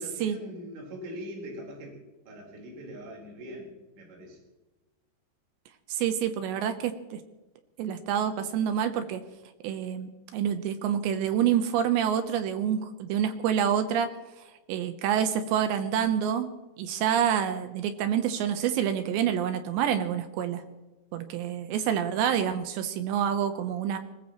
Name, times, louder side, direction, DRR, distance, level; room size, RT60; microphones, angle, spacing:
voice 1, 0.0-2.0 2.3-4.4, equal, 60° right, -1 dB, 6.3 m, -42 dB
voice 2, 5.9-7.2 7.8-9.2 9.6-14.1 14.7-16.5 16.8-20.6 21.1-24.0, right 9 dB, 80° right, 9 dB, 2.8 m, -27 dB
22.5 x 19.5 x 3.1 m, 1.1 s
omnidirectional pair, 5.8 m